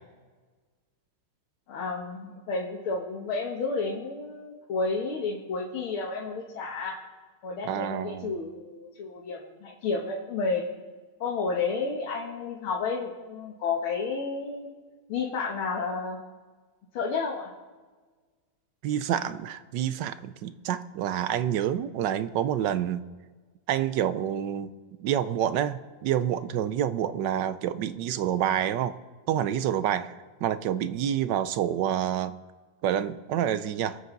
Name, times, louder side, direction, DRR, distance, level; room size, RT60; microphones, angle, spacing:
voice 1, 1.7-7.0 7.4-10.6 11.2-14.7 15.1-16.2 16.9-17.5, left 4 dB, 75° left, -2 dB, 2.2 m, -31 dB
voice 2, 7.7-8.3 18.8-23.0 23.7-24.7 25.0-28.9 29.3-30.1 30.4-32.4 32.8-34.0, right 10 dB, 70° right, 13 dB, 1.1 m, -28 dB
24.0 x 8.1 x 3.9 m, 1.4 s
omnidirectional pair, 2.3 m